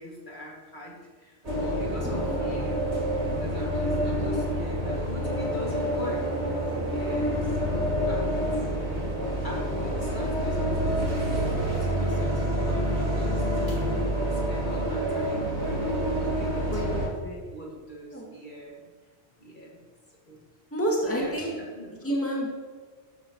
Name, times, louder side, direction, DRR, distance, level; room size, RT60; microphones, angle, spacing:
voice 1, 0.0-2.8 3.4-8.5 9.4-11.2 11.7-13.9 14.3-15.5 16.2-17.1 17.5-18.9 19.4-19.9 20.2-20.4 21.0-22.1, equal, 45° left, -3 dB, 2.6 m, -41 dB
sound 1, 1.4-17.1, equal, 90° right, 3.1 m, -27 dB
voice 2, 2.0-2.4 16.7-17.4 18.1-18.3 20.7-21.5 22.0-22.5, equal, 10° left, -3 dB, 2.4 m, -29 dB
13.5 x 12.5 x 3.2 m, 1.5 s
omnidirectional pair, 1.1 m